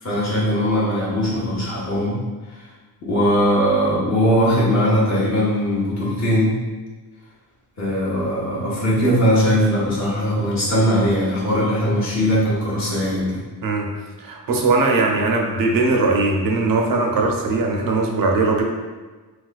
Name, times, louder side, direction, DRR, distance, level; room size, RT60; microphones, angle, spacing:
voice 1, 0.0-2.2 3.0-6.5 7.8-13.4, equal, 40° left, -7 dB, 0.9 m, -20 dB
voice 2, 14.2-18.6, right 3 dB, 55° right, 1 dB, 0.6 m, -20 dB
4.1 x 2.2 x 2.4 m, 1.3 s
cardioid pair, 125°, 41 cm